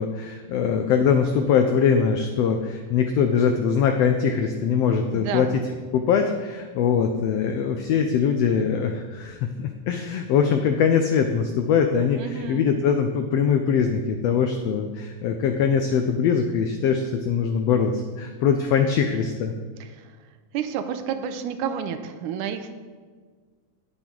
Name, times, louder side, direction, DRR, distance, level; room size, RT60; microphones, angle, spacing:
voice 1, 0.0-5.5 5.9-19.5, left 7 dB, 90° left, 6 dB, 1.4 m, -22 dB
voice 2, 5.1-5.5 12.2-12.6 19.8-20.2 20.5-22.8, right 8 dB, 85° right, 9 dB, 2.1 m, -30 dB
17.0 x 6.1 x 3.9 m, 1.5 s
omnidirectional pair, 3.6 m